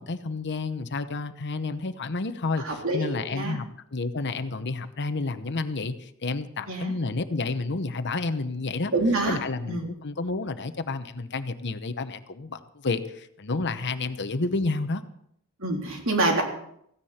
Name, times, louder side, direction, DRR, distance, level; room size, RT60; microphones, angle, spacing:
voice 1, 0.0-2.6 2.9-3.7 3.9-8.9 9.3-15.0, left 3 dB, 55° left, 11 dB, 0.9 m, -30 dB
voice 2, 2.6-3.6 6.7-6.9 8.9-9.4 9.7-9.9 15.6-16.4, right 2 dB, 65° right, 1 dB, 3.6 m, -26 dB
16.5 x 15.5 x 4.3 m, 0.72 s
head